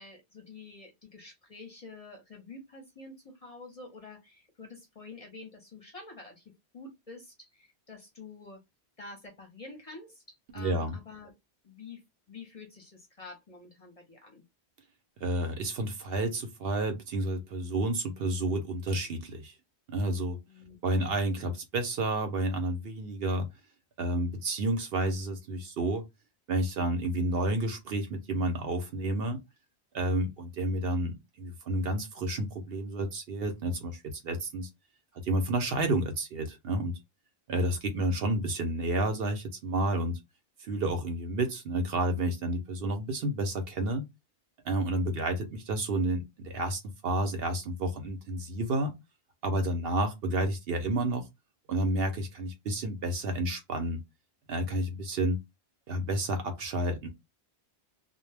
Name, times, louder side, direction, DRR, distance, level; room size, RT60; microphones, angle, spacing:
voice 1, 0.0-6.4 6.7-8.6 9.0-11.3 11.6-12.0 12.3-14.4 20.5-20.8 45.0-45.2, left 3 dB, 40° left, 0.7 m, -48 dB
voice 2, 10.5-11.0 15.2-19.5 19.9-20.4 20.8-23.5 24.0-26.0 26.5-29.4 29.9-34.7 35.2-37.0 37.5-40.2 40.6-44.1 44.6-48.9 49.4-51.3 51.7-54.0 54.5-55.4 55.9-57.1, right 1 dB, 65° right, 0.8 m, -30 dB
2.1 x 2.1 x 3.2 m
omnidirectional pair, 1.1 m